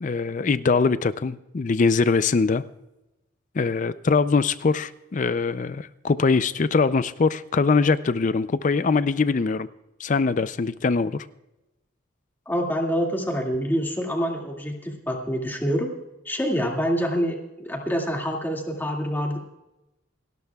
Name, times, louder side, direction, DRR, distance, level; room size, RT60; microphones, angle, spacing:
voice 1, 0.0-2.6 3.5-9.7 10.0-11.3, left 4 dB, 40° left, 14 dB, 0.4 m, -22 dB
voice 2, 12.5-15.9 16.3-19.4, equal, 10° left, 0 dB, 2.1 m, -26 dB
29.0 x 12.0 x 2.3 m, 0.94 s
head